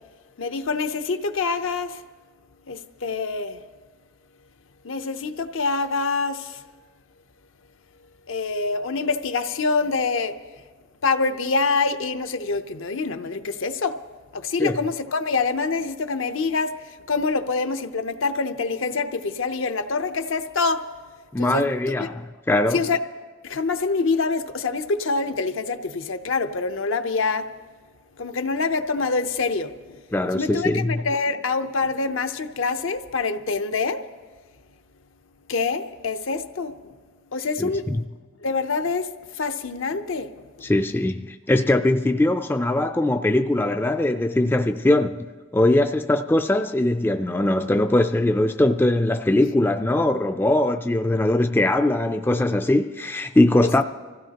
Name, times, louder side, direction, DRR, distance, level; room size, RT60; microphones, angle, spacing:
voice 1, 0.4-2.0 2.7-3.6 4.8-6.6 8.3-10.4 11.0-14.0 14.3-20.9 21.4-21.7 22.0-22.1 22.7-23.0 23.4-27.5 28.2-30.0 30.3-34.0 35.5-36.9 37.3-38.1 38.4-40.7, left 4 dB, 80° left, 0.7 m, -26 dB
voice 2, 21.3-22.8 30.1-31.0 37.6-38.0 40.6-53.8, left 1 dB, 10° left, 0.3 m, -21 dB
25.0 x 15.5 x 2.9 m
head